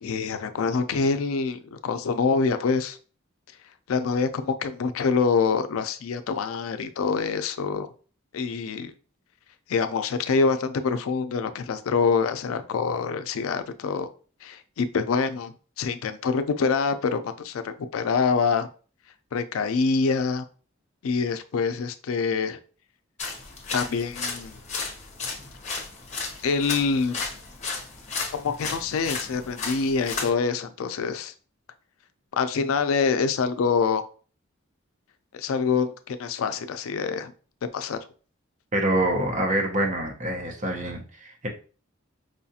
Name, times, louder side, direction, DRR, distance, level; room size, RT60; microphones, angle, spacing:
voice 1, 0.0-3.0 3.9-7.9 8.3-8.9 9.7-14.1 14.4-18.7 19.3-20.4 21.0-22.6 23.7-24.6 26.4-27.2 28.3-31.3 32.3-34.0 35.3-37.3 37.7-38.0, left 5 dB, 85° left, 10 dB, 0.4 m, -25 dB
sound 1, 23.2-30.3, left 4 dB, 35° left, 0.9 m, -34 dB
voice 2, 38.7-41.5, right 1 dB, 35° right, 1 dB, 0.8 m, -26 dB
4.9 x 2.4 x 2.7 m, 0.38 s
head